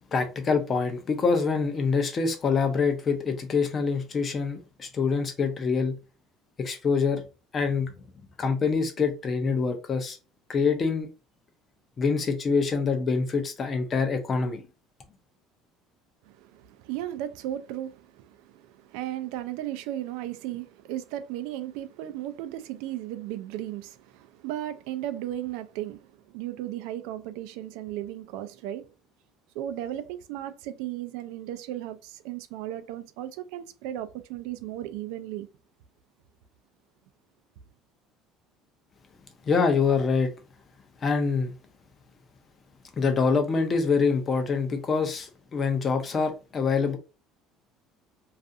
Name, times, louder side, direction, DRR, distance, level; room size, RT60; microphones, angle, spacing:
voice 1, 0.1-5.9 6.6-7.2 7.5-7.9 8.4-10.2 10.5-11.1 12.0-14.6 39.5-40.3 41.0-41.5 43.0-47.0, left 5 dB, 25° left, 0.5 m, -25 dB
voice 2, 16.2-28.9 29.5-35.5, right 12 dB, 85° right, 0.3 m, -35 dB
2.4 x 2.4 x 2.6 m
cardioid pair, 170°, 0 cm